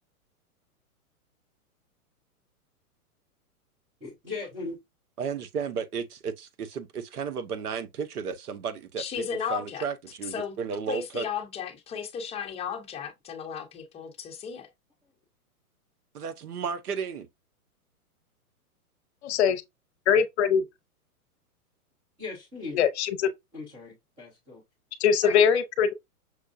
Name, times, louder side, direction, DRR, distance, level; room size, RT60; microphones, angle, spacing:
voice 1, 4.0-4.8 22.2-22.8 23.5-24.6, left 3 dB, 5° right, 0.3 m, -38 dB
voice 2, 5.2-9.2 9.5-11.3 16.1-17.3, right 6 dB, 75° right, 1.0 m, -33 dB
voice 3, 9.0-9.9 10.3-10.5 10.9-14.7 25.2-25.4, left 7 dB, 15° left, 0.8 m, -34 dB
voice 4, 19.2-19.6 20.1-20.6 22.7-23.3 25.0-25.9, left 7 dB, 45° left, 0.8 m, -22 dB
6.3 x 2.3 x 2.5 m
hypercardioid pair, 130°, 45 cm